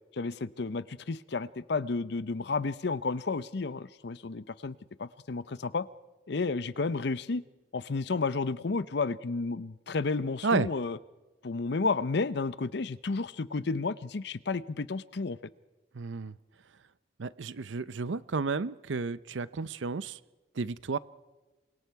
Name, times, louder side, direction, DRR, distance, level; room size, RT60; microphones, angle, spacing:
voice 1, 0.1-5.9 6.3-7.4 7.7-11.0 11.4-15.4, left 4 dB, 65° left, 17 dB, 0.6 m, -32 dB
voice 2, 15.9-16.4 17.2-20.2 20.5-21.0, right 4 dB, 90° right, 17 dB, 0.6 m, -32 dB
28.5 x 23.5 x 4.7 m, 1.2 s
head